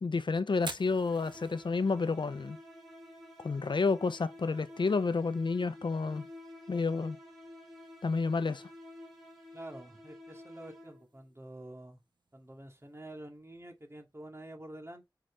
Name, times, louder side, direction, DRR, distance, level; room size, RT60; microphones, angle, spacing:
voice 1, 0.0-2.6 3.4-6.3 6.7-7.2 8.0-8.6, left 4 dB, 80° left, 0.6 m, -30 dB
Fire, 0.5-14.4, right 3 dB, 70° right, 1.7 m, -54 dB
sound 1, 1.0-11.2, left 1 dB, ahead, 4.5 m, -51 dB
voice 2, 9.5-12.0 12.3-15.1, right 1 dB, 35° right, 2.3 m, -48 dB
7.6 x 4.9 x 3.3 m
wide cardioid pair, 70°, 8 cm